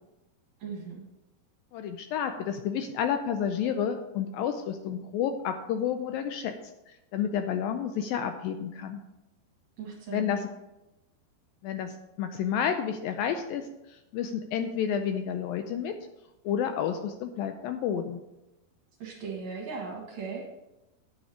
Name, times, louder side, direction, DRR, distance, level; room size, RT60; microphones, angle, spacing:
voice 1, 0.6-1.0 9.8-10.4 19.0-20.5, right 5 dB, 65° right, 0 dB, 2.0 m, -38 dB
voice 2, 1.7-6.5 7.1-9.0 10.1-10.5 11.6-15.9 16.5-18.2, left 8 dB, 80° left, 7 dB, 2.1 m, -30 dB
9.2 x 7.1 x 4.9 m, 0.94 s
omnidirectional pair, 4.5 m